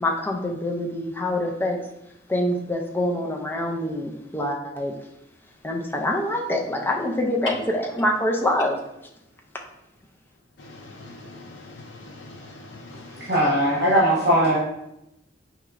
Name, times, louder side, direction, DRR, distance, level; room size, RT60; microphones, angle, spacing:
voice 1, 0.0-1.8 2.3-4.9 5.6-8.8, left 1 dB, 10° left, 0 dB, 0.4 m, -25 dB
voice 2, 10.7-13.2, left 2 dB, 80° left, 1 dB, 0.5 m, -43 dB
voice 3, 13.2-14.6, equal, 60° right, -5 dB, 0.9 m, -19 dB
4.4 x 2.9 x 2.4 m, 0.83 s
head